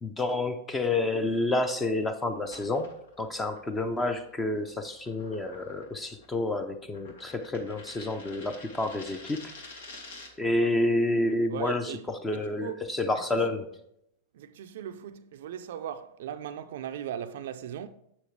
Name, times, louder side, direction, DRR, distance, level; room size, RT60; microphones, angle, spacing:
voice 1, 0.0-2.9 3.2-9.4 10.4-13.7, left 2 dB, 15° left, 0.6 m, -29 dB
sound 1, 2.4-10.5, left 3 dB, 75° left, 1.6 m, -49 dB
voice 2, 11.5-12.0 12.3-12.9 13.1-13.5 14.3-17.9, right 9 dB, 70° right, 0.4 m, -38 dB
7.1 x 7.0 x 3.3 m
hypercardioid pair, 110°, 0 cm